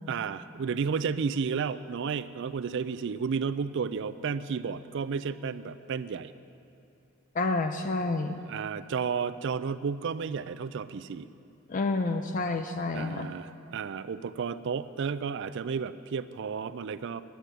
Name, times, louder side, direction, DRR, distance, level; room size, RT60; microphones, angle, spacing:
voice 1, 0.1-6.3 8.3-11.3 12.9-17.2, right 6 dB, 55° right, 13 dB, 0.4 m, -32 dB
voice 2, 7.3-8.4 11.7-13.3, left 3 dB, 35° left, 7 dB, 0.4 m, -29 dB
10.0 x 8.0 x 9.0 m, 2.6 s
head